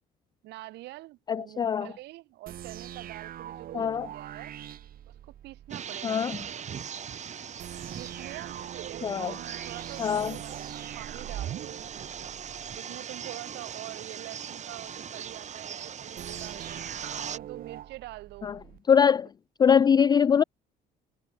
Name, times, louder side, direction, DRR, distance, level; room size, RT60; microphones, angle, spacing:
voice 1, 0.4-4.5 5.1-6.8 7.9-12.4 12.8-16.8 17.3-18.5, right 18 dB, 85° right, 3.0 m, -45 dB
voice 2, 1.3-1.9 3.7-4.1 6.0-6.4 9.0-9.3 10.0-10.3 18.4-18.5 18.9-19.3 19.6-20.4, left 7 dB, 25° left, 0.3 m, -22 dB
sound 1, 2.5-5.7 7.6-12.8 16.2-18.8, right 11 dB, 60° right, 3.5 m, -42 dB
sound 2, 5.7-17.4, right 8 dB, 45° right, 3.7 m, -40 dB
cardioid pair, 110°, 17 cm